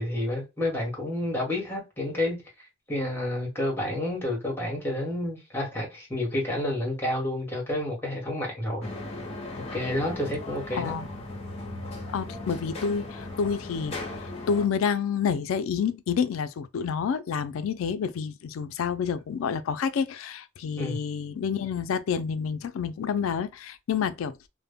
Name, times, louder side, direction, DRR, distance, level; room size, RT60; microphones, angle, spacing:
voice 1, 0.0-2.4 2.9-8.9 9.7-11.0 20.8-21.0, left 1 dB, 10° left, 1.0 m, -29 dB
sound 1, 8.8-14.7, left 2 dB, 30° left, 0.6 m, -37 dB
voice 2, 10.7-11.1 12.1-14.0 14.2-24.4, left 6 dB, 75° left, 0.3 m, -28 dB
2.1 x 2.1 x 3.3 m
head